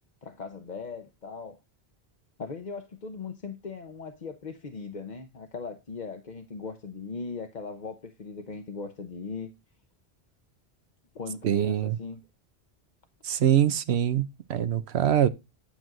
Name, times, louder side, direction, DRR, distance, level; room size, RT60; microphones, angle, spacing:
voice 1, 0.2-1.6 2.4-9.5 11.1-12.2, left 4 dB, 45° left, 1.0 m, -39 dB
voice 2, 11.4-12.0 13.2-15.3, right 10 dB, 85° right, 1.0 m, -24 dB
10.5 x 6.1 x 3.8 m
omnidirectional pair, 1.1 m